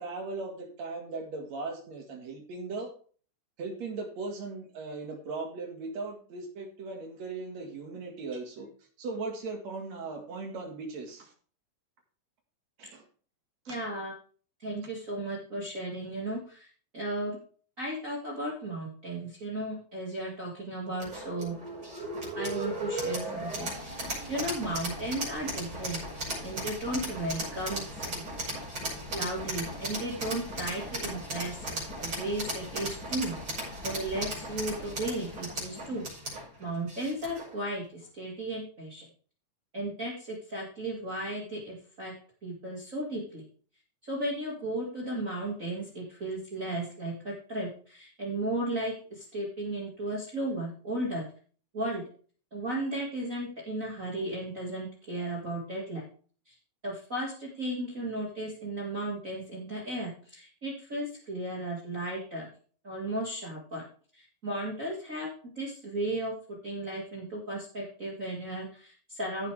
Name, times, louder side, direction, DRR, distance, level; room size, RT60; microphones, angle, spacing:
voice 1, 0.0-2.9 3.6-8.7 9.0-11.3 12.8-13.0 13.7-13.8, right 3 dB, 65° right, 3 dB, 3.0 m, -38 dB
voice 2, 13.7-14.1 14.6-17.4 17.8-21.5 22.4-26.0 26.4-28.2 29.1-36.1 36.3-39.0 39.7-42.1 42.4-43.5 44.0-51.2 51.7-52.0 52.5-56.0 56.5-56.6 56.8-62.5 62.8-63.8 64.1-65.3 65.6-66.3 66.6-69.5, right 1 dB, 30° right, -4 dB, 2.1 m, -35 dB
sound 1, 21.0-37.5, right 1 dB, 45° right, 6.4 m, -36 dB
15.5 x 6.8 x 3.4 m, 0.42 s
omnidirectional pair, 3.4 m